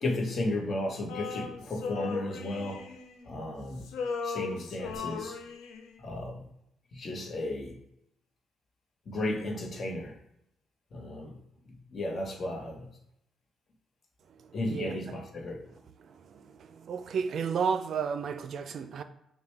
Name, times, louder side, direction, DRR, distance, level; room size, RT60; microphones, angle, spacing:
voice 1, 0.0-2.9 3.3-3.9 4.2-5.4 6.0-6.4 6.9-7.8 9.1-10.1 10.9-11.4 11.9-12.9 14.5-15.6, left 1 dB, 45° left, 1.0 m, -34 dB
Male singing, 1.1-3.5 3.8-6.0, left 5 dB, 90° left, 0.5 m, -37 dB
voice 2, 14.3-15.2 15.5-15.7 16.0-19.0, right 6 dB, 60° right, 0.4 m, -33 dB
5.8 x 2.2 x 3.3 m
cardioid pair, 90°, 0 cm